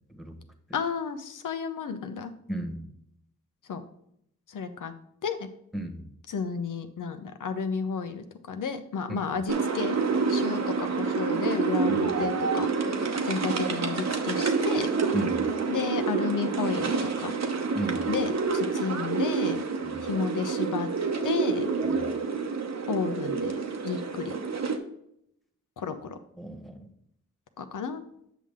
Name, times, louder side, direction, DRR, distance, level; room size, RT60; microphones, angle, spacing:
voice 1, 0.7-2.3 3.7-3.8 4.5-4.9 5.2-5.4 6.3-10.0 10.3-12.7 13.2-14.9 15.7-17.3 18.1-19.6 20.0-20.9 21.2-21.7 22.9-24.3 25.8-26.2 27.6-28.0, left 6 dB, 70° left, 9 dB, 0.9 m, -32 dB
voice 2, 2.5-2.9 5.7-6.0 11.9-12.2 15.1-15.4 17.7-18.1 19.8-20.0 21.8-22.1 26.4-26.9, right 1 dB, ahead, 4 dB, 1.5 m, -34 dB
sound 1, 9.5-24.8, right 4 dB, 55° right, 1.1 m, -28 dB
8.2 x 5.7 x 3.7 m, 0.73 s
cardioid pair, 50°, 32 cm